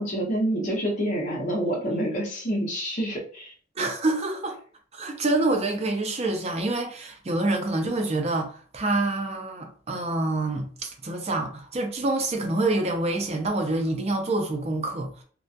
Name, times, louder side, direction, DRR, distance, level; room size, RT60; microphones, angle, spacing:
voice 1, 0.0-3.5, right 1 dB, 45° left, 0.7 m, -27 dB
voice 2, 3.8-4.6 4.9-15.2, right 2 dB, 35° right, 0.5 m, -27 dB
2.3 x 2.2 x 2.6 m
head